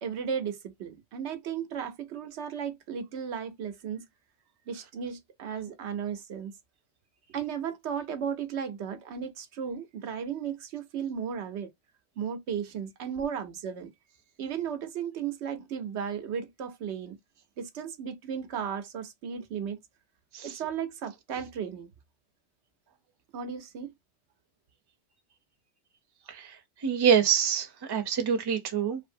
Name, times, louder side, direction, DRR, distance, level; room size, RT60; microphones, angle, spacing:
voice 1, 0.0-4.1 4.7-6.5 7.3-11.7 12.2-13.9 14.4-17.2 17.6-19.8 20.4-21.9 23.3-23.9, right 7 dB, 85° right, 1.0 m, -35 dB
voice 2, 26.8-29.0, right 7 dB, 30° right, 0.5 m, -25 dB
2.7 x 2.5 x 2.5 m
omnidirectional pair, 1.1 m